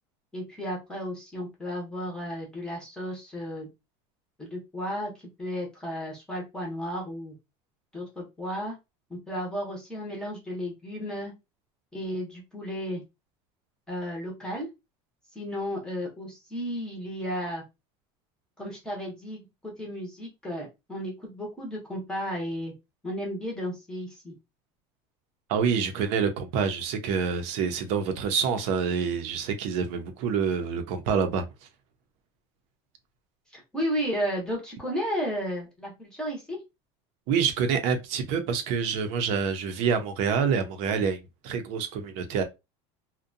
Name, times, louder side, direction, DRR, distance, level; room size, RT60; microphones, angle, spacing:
voice 1, 0.3-3.7 4.4-5.1 5.4-7.3 7.9-8.7 9.1-11.3 11.9-13.0 13.9-14.7 15.3-17.6 18.6-22.7 23.0-24.3 33.5-36.6, equal, 5° left, 0.7 m, -33 dB
voice 2, 25.5-31.5 37.3-41.2 41.4-42.4, right 6 dB, 50° right, 0.5 m, -27 dB
2.6 x 2.1 x 2.5 m
cardioid pair, 175°, 14 cm